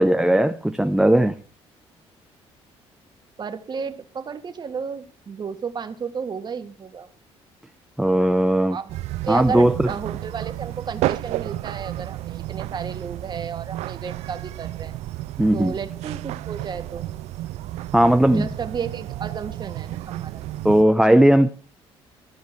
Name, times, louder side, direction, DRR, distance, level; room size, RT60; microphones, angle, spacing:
voice 1, 0.0-1.4 8.0-8.8 9.3-9.9 15.4-15.7 17.9-18.5 20.6-21.5, right 1 dB, 5° right, 0.7 m, -17 dB
voice 2, 3.4-7.1 8.7-8.9 9.2-14.9 15.5-17.1 18.3-20.5, right 6 dB, 40° right, 1.6 m, -32 dB
sound 1, 8.9-20.8, right 15 dB, 80° right, 0.4 m, -32 dB
14.5 x 5.1 x 7.7 m
cardioid pair, 90°, 11 cm